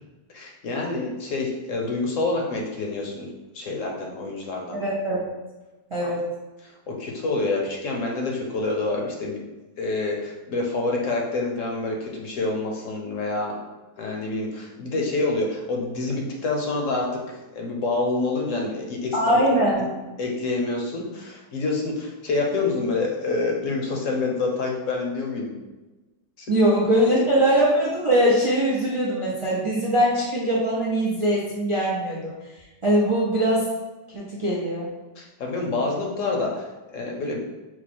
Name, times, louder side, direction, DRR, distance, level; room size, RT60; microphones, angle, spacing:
voice 1, 0.3-3.3 3.5-4.8 6.0-6.1 6.6-9.4 9.8-13.6 14.0-17.1 17.3-19.4 19.8-19.9 20.2-25.6 26.4-26.5 27.1-27.2 35.2-36.7 36.9-37.4, left 3 dB, 60° left, 0 dB, 1.0 m, -27 dB
voice 2, 4.7-5.3 5.9-6.2 19.1-19.9 26.5-32.3 32.8-33.7 34.1-34.9, right 1 dB, 45° right, -5 dB, 0.4 m, -21 dB
4.7 x 2.1 x 4.2 m, 1.1 s
omnidirectional pair, 1.7 m